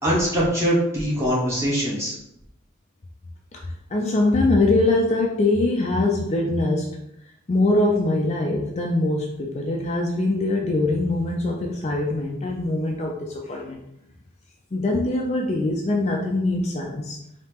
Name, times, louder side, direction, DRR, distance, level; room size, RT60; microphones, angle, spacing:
voice 1, 0.0-2.1, equal, 15° right, -7 dB, 1.5 m, -22 dB
voice 2, 3.9-7.0 7.5-13.8 14.7-17.2, left 2 dB, 35° left, 0 dB, 0.4 m, -23 dB
4.3 x 2.8 x 3.5 m, 0.81 s
head